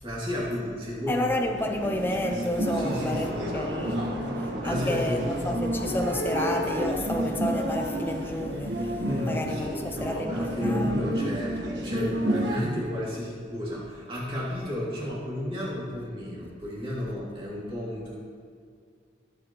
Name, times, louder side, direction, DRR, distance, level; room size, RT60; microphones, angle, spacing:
voice 1, 0.0-1.3 2.7-5.4 9.0-18.2, left 1 dB, 30° right, -6 dB, 2.6 m, -33 dB
voice 2, 1.1-4.2 4.6-11.0, left 1 dB, 10° left, 3 dB, 0.5 m, -30 dB
sound 1, 1.6-12.6, equal, 75° right, 1.4 m, -30 dB
sound 2, 2.6-7.8, right 1 dB, 60° right, 1.9 m, -39 dB
17.0 x 7.7 x 3.1 m, 2.2 s
head